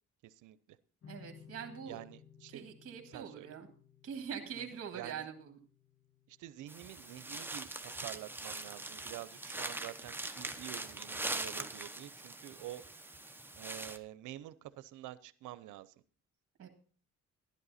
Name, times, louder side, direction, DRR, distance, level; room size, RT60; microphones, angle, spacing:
voice 1, 0.2-0.8 1.9-2.6 3.0-3.5 4.6-4.7 4.9-5.3 6.3-12.8 13.2-15.9, right 14 dB, 85° right, 16 dB, 0.7 m, -48 dB
sound 1, 1.0-8.2, left 7 dB, 55° left, 2.2 m, -59 dB
voice 2, 1.1-2.0 2.5-3.7 4.0-5.6 16.6-16.7, right 7 dB, 50° right, 4 dB, 1.8 m, -43 dB
sound 2, 6.7-14.0, right 2 dB, 5° right, 0.9 m, -42 dB
11.5 x 11.0 x 4.1 m, 0.42 s
cardioid pair, 90°, 30 cm